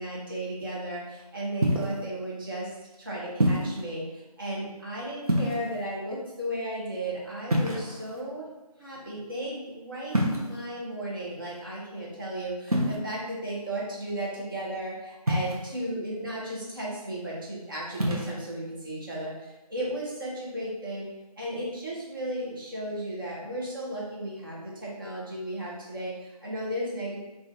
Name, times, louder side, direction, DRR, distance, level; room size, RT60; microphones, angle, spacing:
voice 1, 0.0-2.7 3.0-8.4 8.8-21.1 21.4-27.2, right 1 dB, 35° right, -5 dB, 0.9 m, -35 dB
sound 1, 1.6-2.0 3.4-3.8 5.2-5.9 7.5-8.2 10.1-10.6 12.7-13.0 15.3-15.8 17.9-18.3, equal, 70° right, 0.8 m, -26 dB
3.7 x 2.5 x 2.6 m, 1.0 s
figure-of-eight pair, 165°, 20 cm